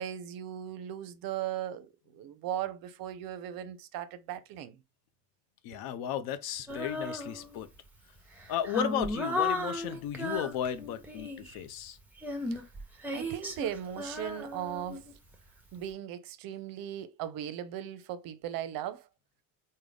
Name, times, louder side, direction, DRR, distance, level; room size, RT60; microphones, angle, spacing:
voice 1, 0.0-4.8 5.7-5.8 12.5-12.6 13.1-15.0 15.7-19.1, right 11 dB, 55° right, 0.6 m, -38 dB
voice 2, 5.6-7.7 8.5-12.0, left 10 dB, 60° left, 0.6 m, -34 dB
Female singing, 6.7-7.8 8.3-11.6 12.2-15.4, left 2 dB, 5° right, 0.8 m, -35 dB
3.6 x 2.2 x 3.3 m
supercardioid pair, 90°, 43 cm